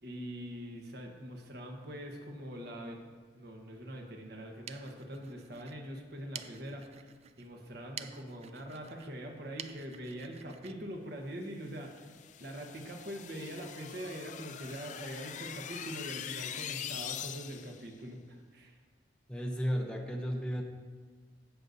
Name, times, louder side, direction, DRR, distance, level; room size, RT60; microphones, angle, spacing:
voice 1, 0.0-3.0 3.3-12.1 12.4-18.8, equal, 60° right, 2 dB, 1.2 m, -43 dB
sound 1, 4.4-11.9, right 8 dB, 35° right, 0.3 m, -50 dB
sound 2, 11.8-17.8, left 9 dB, 40° left, 0.3 m, -43 dB
voice 2, 19.3-20.6, equal, 5° left, 1 dB, 0.7 m, -33 dB
16.0 x 6.5 x 2.7 m, 1.5 s
head